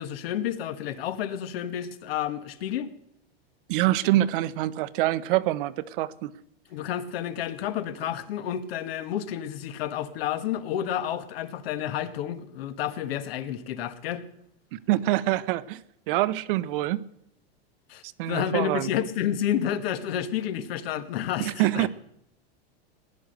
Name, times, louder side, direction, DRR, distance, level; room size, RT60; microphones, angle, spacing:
voice 1, 0.0-2.9 6.7-14.2 17.9-21.9, left 10 dB, 70° left, 1.5 m, -30 dB
voice 2, 3.7-6.3 14.7-15.8 16.1-17.0 18.0-18.9 21.4-21.9, right 15 dB, 55° right, 0.9 m, -25 dB
18.5 x 10.5 x 6.6 m
supercardioid pair, 140°, 31 cm